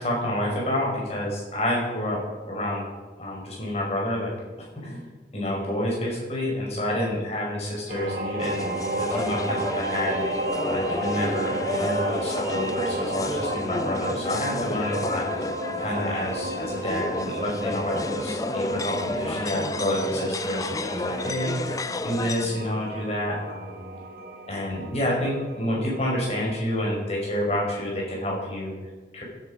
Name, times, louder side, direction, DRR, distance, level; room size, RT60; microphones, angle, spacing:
voice 1, 0.0-2.2 2.5-2.9 3.2-4.3 4.8-5.1 5.3-8.7 8.9-10.2 10.6-15.5 15.8-23.8 24.5-28.7 29.1-29.2, left 1 dB, 35° left, -2 dB, 5.5 m, -28 dB
sound 1, 7.9-27.2, right 2 dB, 55° right, 1.8 m, -33 dB
sound 2, 8.4-22.5, left 2 dB, 20° left, 0.4 m, -31 dB
16.5 x 10.5 x 5.2 m, 1.3 s
head